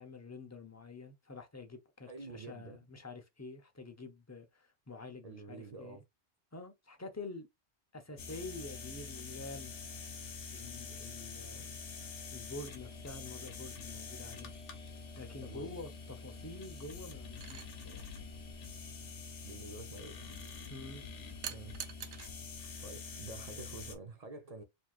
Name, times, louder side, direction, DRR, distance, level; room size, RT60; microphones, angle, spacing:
voice 1, 0.0-6.0 6.5-7.5 7.9-9.7 10.5-11.7 12.3-14.5 15.2-18.1 20.7-21.1, left 3 dB, 20° left, 0.6 m, -47 dB
voice 2, 2.1-2.8 5.2-6.0 15.4-15.8 19.4-20.2 21.5-21.8 22.8-24.6, right 3 dB, 45° right, 0.6 m, -48 dB
sound 1, 8.2-24.0, left 4 dB, 80° left, 1.2 m, -46 dB
sound 2, 17.4-17.7 21.4-22.3 23.7-23.9, right 9 dB, 75° right, 0.9 m, -44 dB
4.4 x 2.9 x 2.4 m
omnidirectional pair, 1.2 m